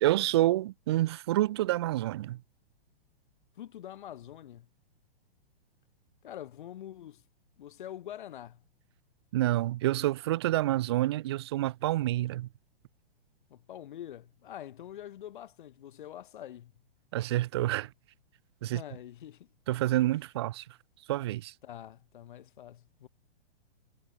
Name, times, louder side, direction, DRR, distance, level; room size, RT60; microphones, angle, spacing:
voice 1, 0.0-2.4 9.3-12.5 17.1-17.9 18.6-18.8 19.7-20.6 21.1-21.5, right 15 dB, 25° right, 0.6 m, -28 dB
voice 2, 3.6-4.7 6.2-7.2 7.6-8.6 13.5-16.7 18.6-19.5 21.6-23.1, left 11 dB, 50° left, 6.3 m, -45 dB
hypercardioid pair, 170°, 31 cm